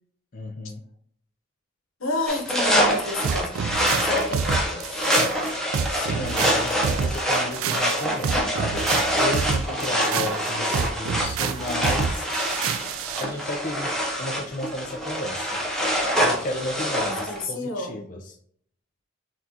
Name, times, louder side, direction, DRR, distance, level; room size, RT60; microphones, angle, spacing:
voice 1, 0.3-0.8 5.9-12.3 13.2-15.6 16.2-18.2, left 1 dB, 40° left, 3 dB, 0.5 m, -33 dB
voice 2, 2.0-5.2 9.8-10.4 17.3-18.1, left 2 dB, 85° left, 2 dB, 1.1 m, -31 dB
sound 1, 2.3-17.4, equal, ahead, 0.7 m, -25 dB
sound 2, 3.2-13.3, right 6 dB, 85° right, 0.3 m, -28 dB
6.0 x 2.4 x 2.8 m, 0.64 s
head